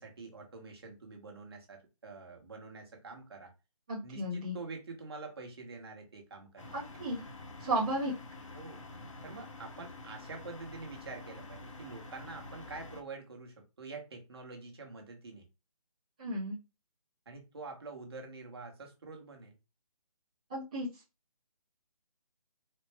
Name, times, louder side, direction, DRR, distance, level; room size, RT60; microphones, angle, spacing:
voice 1, 0.0-3.5 4.0-6.8 8.5-8.9 9.2-15.4 17.3-19.6, right 3 dB, 40° right, 1 dB, 1.1 m, -46 dB
voice 2, 3.9-4.5 6.7-7.2 7.6-8.1 16.2-16.6 20.5-20.9, right 1 dB, 10° right, -11 dB, 0.6 m, -33 dB
sound 1, 6.6-13.0, left 2 dB, 55° left, 1.0 m, -48 dB
4.2 x 2.0 x 3.2 m, 0.27 s
hypercardioid pair, 175°, 19 cm